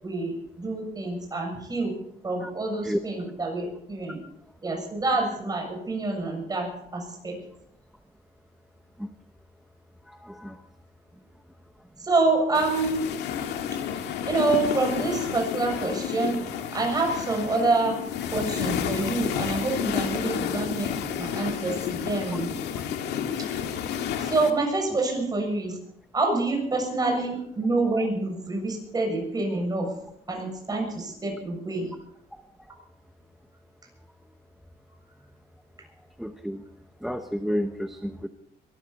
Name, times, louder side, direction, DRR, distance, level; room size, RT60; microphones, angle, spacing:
voice 1, 0.0-1.9 2.2-4.2 4.6-7.4 12.0-13.1 14.2-18.0 18.3-22.5 24.2-25.8 26.1-29.9 30.3-31.9, right 3 dB, 25° right, 2 dB, 7.0 m, -27 dB
voice 2, 10.1-10.7 32.3-32.4 36.2-36.6 37.0-38.3, equal, ahead, 8 dB, 0.9 m, -31 dB
sound 1, 12.5-24.5, left 8 dB, 80° left, 2.0 m, -30 dB
23.0 x 14.0 x 4.2 m, 0.71 s
cardioid pair, 110°, 17 cm